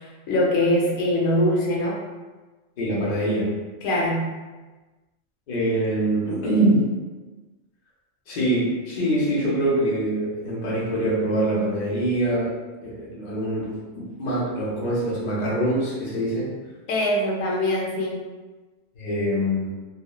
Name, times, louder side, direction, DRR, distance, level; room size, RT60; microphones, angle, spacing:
voice 1, 0.0-2.0 3.8-4.2 16.9-18.2, left 1 dB, 85° left, -2 dB, 1.0 m, -22 dB
voice 2, 2.8-3.6 5.5-6.9 8.3-12.5 12.8-16.5 19.0-19.7, right 1 dB, 45° left, -6 dB, 0.7 m, -24 dB
2.9 x 2.0 x 2.3 m, 1.2 s
omnidirectional pair, 1.3 m